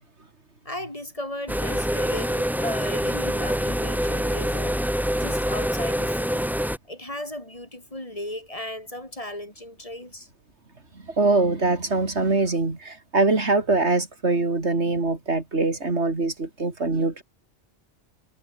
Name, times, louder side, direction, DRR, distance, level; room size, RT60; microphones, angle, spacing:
voice 1, 0.7-4.8 5.2-6.5 6.9-10.3, left 1 dB, 30° left, 3.7 m, -35 dB
sound 1, 1.5-6.8, equal, ahead, 1.0 m, -25 dB
voice 2, 11.1-17.2, right 3 dB, 70° right, 3.5 m, -23 dB
omnidirectional pair, 1.2 m